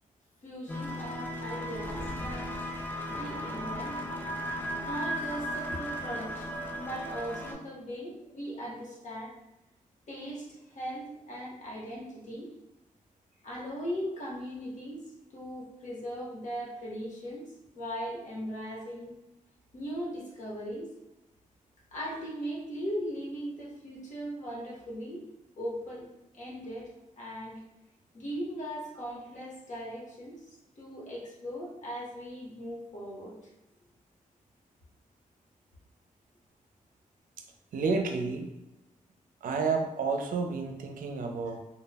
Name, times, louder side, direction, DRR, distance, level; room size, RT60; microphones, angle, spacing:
voice 1, 0.4-2.7 3.1-4.1 4.8-9.3 10.1-12.5 13.4-15.0 15.3-19.1 19.7-20.9 21.9-25.3 25.6-26.1 26.3-26.9 27.2-27.6 28.1-30.5 30.8-33.3, equal, 60° left, -4 dB, 0.9 m, -39 dB
sound 1, 0.7-7.5, equal, 15° left, 0.3 m, -36 dB
voice 2, 37.7-38.5 39.4-41.6, right 4 dB, 90° right, 4 dB, 0.4 m, -30 dB
2.2 x 2.1 x 3.3 m, 0.96 s
wide cardioid pair, 120°, 14 cm